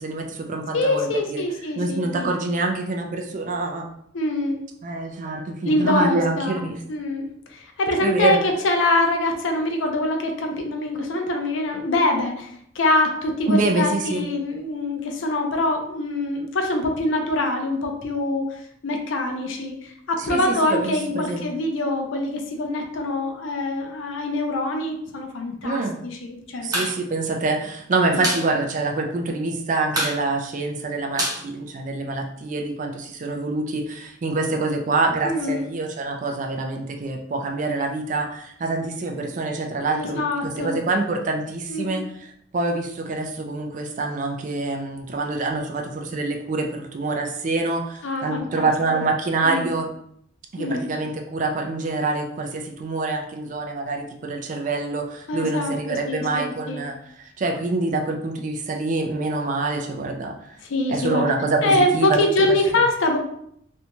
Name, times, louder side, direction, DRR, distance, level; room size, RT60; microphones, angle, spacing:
voice 1, 0.0-1.4 1.8-3.9 4.8-6.8 8.0-8.4 13.5-14.3 20.3-21.5 25.6-26.0 26.6-49.9 50.5-60.6 60.9-62.2 62.5-62.6, right 3 dB, 40° right, 2 dB, 0.3 m, -26 dB
voice 2, 0.7-2.4 4.1-4.6 5.6-26.8 28.1-28.3 35.2-35.7 39.9-40.8 41.7-42.0 48.0-49.0 49.4-49.7 50.6-50.9 55.3-55.7 56.0-56.8 60.7-61.3 61.6-63.2, left 2 dB, 80° left, 3 dB, 0.5 m, -24 dB
sound 1, 26.6-26.9 27.2-27.3 27.6-28.5 28.8-28.9 29.2-29.6 29.9-32.3, right 1 dB, 20° right, 0.7 m, -27 dB
2.6 x 2.2 x 2.9 m, 0.70 s
head